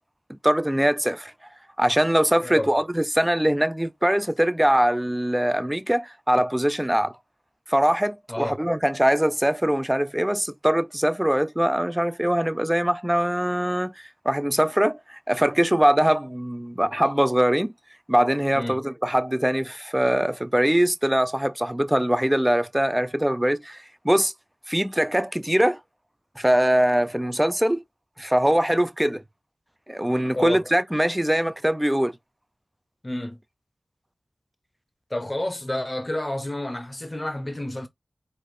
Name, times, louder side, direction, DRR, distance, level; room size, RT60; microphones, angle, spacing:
voice 1, 0.4-1.3 1.8-7.1 7.7-17.7 18.1-24.3 24.7-25.8 26.4-27.8 28.2-29.2 29.9-32.1, right 1 dB, 10° right, 0.5 m, -22 dB
voice 2, 2.4-2.7 8.3-8.6 18.5-18.8 30.3-30.6 33.0-33.4 35.1-37.9, left 1 dB, 30° left, 0.9 m, -30 dB
4.1 x 2.6 x 3.2 m
wide cardioid pair, 60°, 0 cm